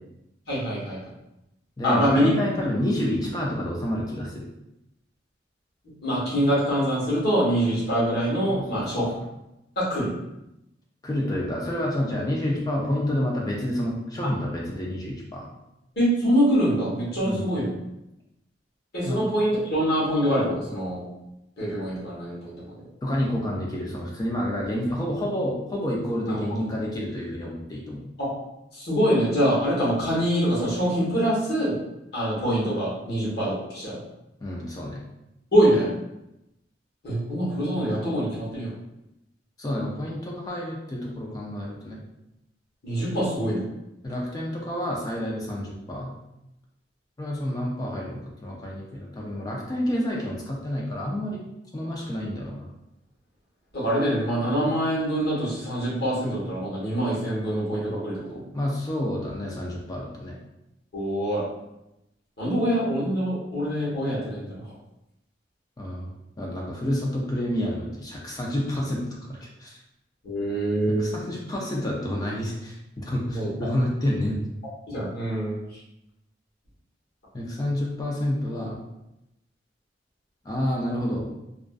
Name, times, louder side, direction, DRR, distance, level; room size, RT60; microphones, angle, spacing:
voice 1, 0.5-1.0 1.8-2.3 6.0-9.1 9.8-10.1 14.2-14.3 16.0-17.7 18.9-21.0 21.6-22.7 26.3-26.6 28.2-28.3 28.7-31.8 32.1-34.0 35.5-35.9 37.0-38.7 42.8-43.6 53.7-58.4 60.9-61.4 62.4-64.6 70.2-71.1 73.3-73.5 74.9-75.5, equal, 60° left, -7 dB, 1.1 m, -24 dB
voice 2, 1.8-4.5 8.5-8.8 11.0-15.5 17.2-17.6 19.1-19.2 23.0-28.1 34.4-35.0 39.6-42.0 44.0-46.1 47.2-51.4 51.7-52.7 58.5-60.3 65.8-69.7 71.0-74.4 77.3-78.8 80.4-81.3, left 1 dB, 20° left, -2 dB, 0.4 m, -29 dB
2.4 x 2.4 x 2.3 m, 0.88 s
head